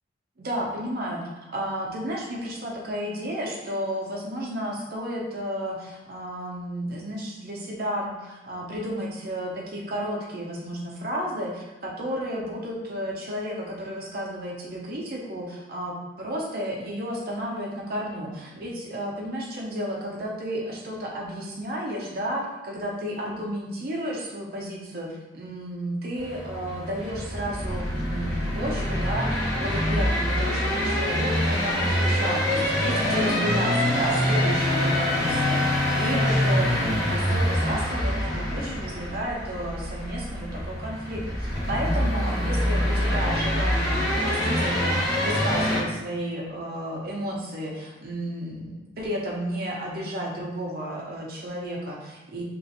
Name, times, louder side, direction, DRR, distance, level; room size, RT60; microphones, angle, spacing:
voice 1, 0.4-1.2 1.5-52.4, equal, 55° right, -2 dB, 0.7 m, -32 dB
sound 1, 26.2-45.8, equal, 15° left, 0.9 m, -25 dB
3.1 x 3.0 x 2.9 m, 1.1 s
head